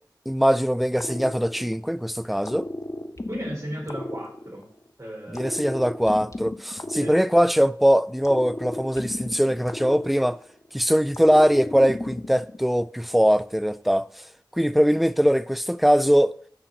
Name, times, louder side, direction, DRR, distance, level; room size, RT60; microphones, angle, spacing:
voice 1, 0.3-2.7 5.3-10.4 10.7-14.1 14.5-16.3, equal, ahead, 0.3 m, -21 dB
sound 1, 1.0-2.0 2.4-4.9 5.3-7.8 8.2-10.7 11.1-12.6, left 1 dB, 45° left, 0.8 m, -35 dB
voice 2, 3.3-4.7 5.0-5.7 7.0-7.2, equal, 40° right, 4.1 m, -36 dB
13.0 x 4.4 x 3.9 m
wide cardioid pair, 40°, 8 cm